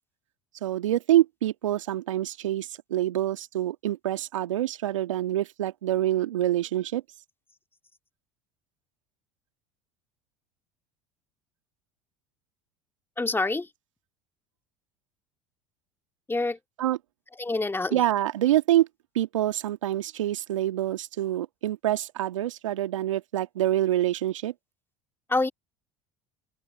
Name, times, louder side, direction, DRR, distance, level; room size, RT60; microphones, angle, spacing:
voice 1, 0.6-7.0 16.8-17.0 17.9-18.9 19.2-24.5, right 13 dB, 85° right, 1.8 m, -26 dB
voice 2, 13.2-13.7 16.3-16.6 17.4-18.0 25.3-25.5, left 2 dB, 15° left, 2.4 m, -26 dB
open air
hypercardioid pair, 75°, 16 cm